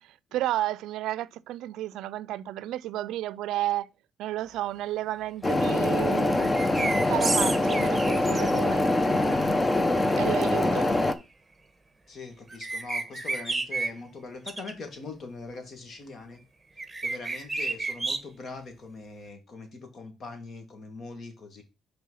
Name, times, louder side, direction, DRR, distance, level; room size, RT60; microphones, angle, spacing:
voice 1, 0.0-3.9 4.2-8.9 10.1-10.9, right 14 dB, 90° right, 0.4 m, -32 dB
sound 1, 5.4-11.1, left 2 dB, 20° left, 0.8 m, -24 dB
sound 2, 6.4-8.6 12.5-13.9 14.5-14.7 16.8-18.2, right 3 dB, 15° right, 1.5 m, -31 dB
voice 2, 9.1-9.5 12.1-16.4 17.0-21.6, left 3 dB, 50° left, 2.2 m, -42 dB
6.2 x 4.4 x 5.6 m
cardioid pair, 90°, 0 cm